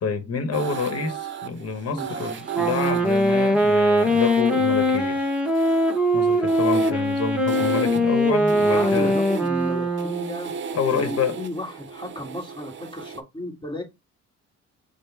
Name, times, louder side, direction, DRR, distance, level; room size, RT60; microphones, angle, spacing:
voice 1, 0.0-5.2 6.1-9.2 10.7-11.4, left 5 dB, 55° left, 1.1 m, -28 dB
sound 1, 0.5-13.2, right 6 dB, 40° right, 0.6 m, -36 dB
voice 2, 1.9-2.5 8.7-10.5 10.9-13.8, left 1 dB, 15° left, 1.7 m, -34 dB
Wind instrument woodwind instrument, 2.5-10.4, equal, 5° right, 1.0 m, -21 dB
5.1 x 2.1 x 4.6 m
cardioid pair, 90°, 30 cm